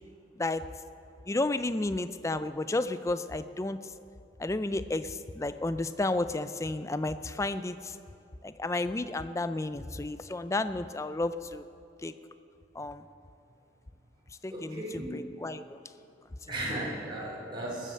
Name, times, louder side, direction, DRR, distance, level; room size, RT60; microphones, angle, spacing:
voice 1, 0.4-0.7 1.3-3.8 4.4-8.0 8.4-11.6 12.0-12.1 12.8-13.0 14.4-15.8, left 2 dB, 15° left, 12 dB, 0.4 m, -32 dB
voice 2, 14.5-15.2 16.5-17.9, right 1 dB, 25° right, -5 dB, 3.0 m, -36 dB
21.5 x 7.7 x 6.7 m, 2.6 s
head